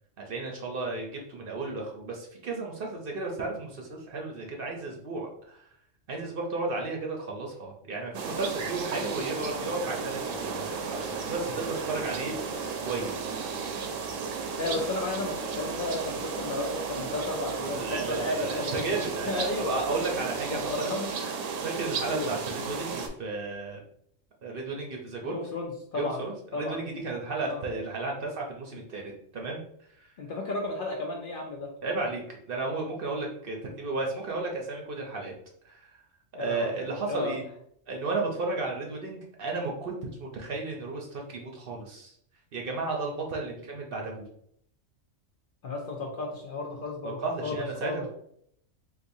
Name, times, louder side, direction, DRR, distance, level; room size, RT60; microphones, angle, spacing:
voice 1, 0.2-5.6 6.1-13.3 17.8-20.9 21.6-23.8 24.4-25.3 25.9-29.6 30.0-30.1 31.8-35.3 35.6-36.0 36.4-37.4 37.9-42.1 42.5-44.3 47.0-48.1, right 3 dB, 55° right, 0 dB, 0.7 m, -34 dB
sound 1, 8.1-23.1, right 5 dB, 85° right, 1.0 m, -34 dB
voice 2, 14.6-19.0 19.3-19.8 20.5-21.2 22.1-22.3 25.2-26.2 26.5-26.8 27.4-27.6 30.2-31.7 36.3-37.3 45.6-48.1, left 2 dB, 60° left, 0 dB, 0.6 m, -33 dB
3.9 x 2.6 x 2.6 m, 0.68 s
omnidirectional pair, 1.3 m